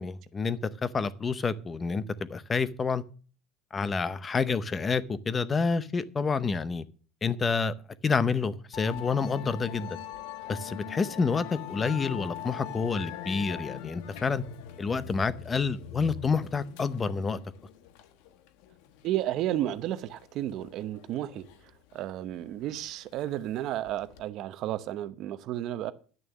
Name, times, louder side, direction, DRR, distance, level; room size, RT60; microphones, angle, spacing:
voice 1, 0.0-3.0 3.7-6.8 7.2-7.7 8.0-10.0 10.5-14.4 14.8-17.4, left 5 dB, 20° left, 0.6 m, -28 dB
Musical instrument, 8.7-24.2, left 11 dB, 70° left, 1.2 m, -42 dB
voice 2, 19.0-21.4 21.9-25.9, right 13 dB, 45° right, 0.8 m, -32 dB
11.0 x 6.5 x 7.1 m
cardioid pair, 160°, 0 cm